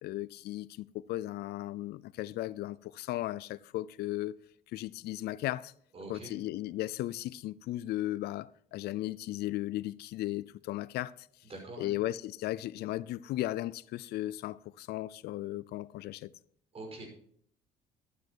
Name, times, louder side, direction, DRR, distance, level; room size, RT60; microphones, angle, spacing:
voice 1, 0.0-4.4 4.7-5.7 6.1-11.3 11.8-16.3, left 15 dB, 75° left, 0.5 m, -36 dB
voice 2, 5.9-6.3 11.4-11.9 16.7-17.1, right 2 dB, 35° right, 5.4 m, -44 dB
12.0 x 9.3 x 4.6 m
cardioid pair, 110°, 17 cm